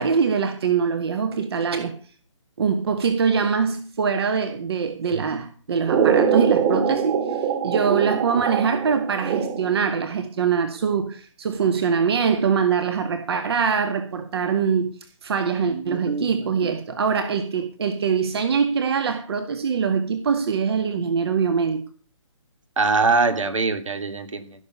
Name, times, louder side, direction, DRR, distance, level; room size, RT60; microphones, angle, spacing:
voice 1, 0.0-1.9 2.6-14.9 15.2-21.8, right 6 dB, 50° right, 1.8 m, -23 dB
sound 1, 5.9-9.9, right 7 dB, 30° right, 2.5 m, -23 dB
voice 2, 15.7-16.3 22.8-24.6, right 4 dB, 75° right, 2.7 m, -23 dB
16.0 x 6.9 x 7.2 m
figure-of-eight pair, 145°, 16 cm